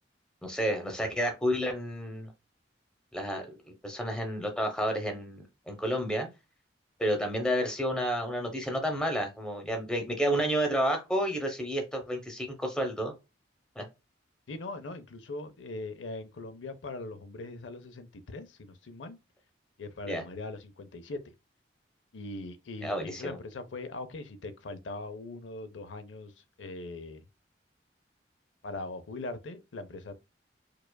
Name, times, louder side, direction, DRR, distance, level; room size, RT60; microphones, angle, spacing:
voice 1, 0.4-2.3 3.1-3.5 3.8-6.3 7.0-13.1 13.8-13.9 20.1-20.2 22.8-23.4, equal, 5° left, 0.7 m, -30 dB
voice 2, 14.5-19.2 19.8-21.2 22.1-26.3 26.6-27.2 28.6-30.1, left 2 dB, 90° left, 0.5 m, -40 dB
4.7 x 2.4 x 2.2 m
head